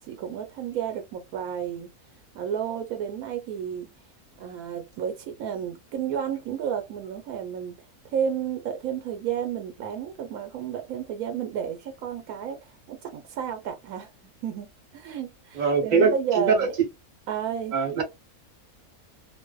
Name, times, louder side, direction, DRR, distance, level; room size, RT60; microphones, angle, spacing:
voice 1, 0.1-1.9 2.3-3.9 4.4-7.7 8.1-14.1 14.4-16.7 17.3-17.8, right 8 dB, 80° right, 1.1 m, -32 dB
voice 2, 15.5-16.7 17.7-18.0, right 5 dB, 40° right, 0.8 m, -22 dB
2.5 x 2.1 x 2.2 m
omnidirectional pair, 1.5 m